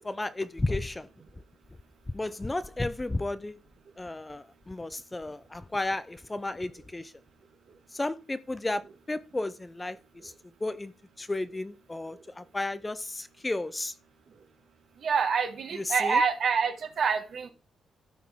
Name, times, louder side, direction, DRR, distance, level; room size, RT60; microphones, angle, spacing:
voice 1, 0.0-1.1 2.1-3.6 4.0-7.1 7.9-8.8 9.1-10.0 10.2-10.3 10.6-10.9 11.2-13.9 15.7-16.2, left 2 dB, 15° left, 0.4 m, -33 dB
voice 2, 15.0-17.5, right 5 dB, 55° right, 1.7 m, -26 dB
14.0 x 5.9 x 3.6 m
cardioid pair, 135°, 0 cm